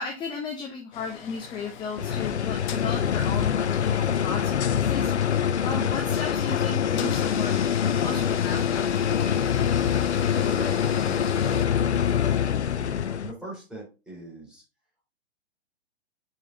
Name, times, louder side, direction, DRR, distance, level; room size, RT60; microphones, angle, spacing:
voice 1, 0.0-5.3 5.6-7.7 8.0-8.6, left 5 dB, 15° left, 2 dB, 0.8 m, -34 dB
sound 1, 0.9-11.7, left 8 dB, 45° left, 0.9 m, -40 dB
sound 2, 2.0-13.3, left 8 dB, 90° left, 0.5 m, -25 dB
voice 2, 3.7-4.1 10.3-14.6, right 2 dB, ahead, -6 dB, 3.4 m, -43 dB
5.5 x 4.7 x 3.7 m, 0.29 s
figure-of-eight pair, 120°, 33 cm